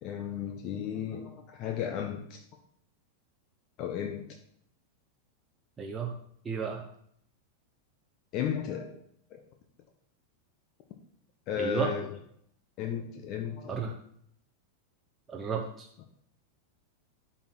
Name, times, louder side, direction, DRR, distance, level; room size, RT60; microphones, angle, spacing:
voice 1, 0.0-2.4 3.8-4.2 8.3-9.0 9.3-9.4 11.5-12.1 12.8-13.9, left 8 dB, 40° left, 4 dB, 0.9 m, -34 dB
voice 2, 5.8-6.1 6.4-6.8 11.6-11.9 13.7-13.9 15.3-15.9, right 6 dB, 20° right, 0 dB, 0.9 m, -33 dB
12.0 x 4.3 x 4.5 m, 0.68 s
figure-of-eight pair, 90°, 0 cm